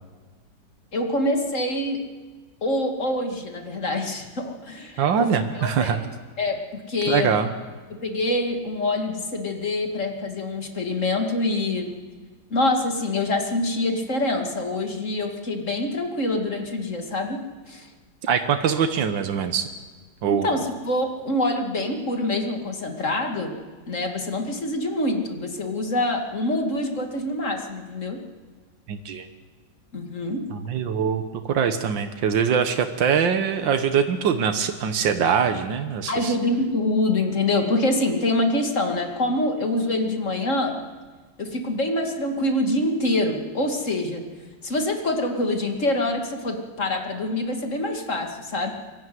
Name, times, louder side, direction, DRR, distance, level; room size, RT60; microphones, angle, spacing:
voice 1, 0.9-2.0 2.6-6.0 6.4-7.3 7.9-11.9 12.5-17.4 17.7-17.9 20.3-23.6 23.9-28.2 29.9-30.5 36.1-40.8 41.4-44.2 44.6-48.7, left 1 dB, 45° left, 3 dB, 2.6 m, -25 dB
voice 2, 5.0-6.0 7.1-7.5 18.2-19.7 20.2-20.5 28.9-29.3 30.5-36.3, right 7 dB, 85° right, 7 dB, 1.9 m, -23 dB
23.5 x 13.5 x 9.3 m, 1.4 s
omnidirectional pair, 2.0 m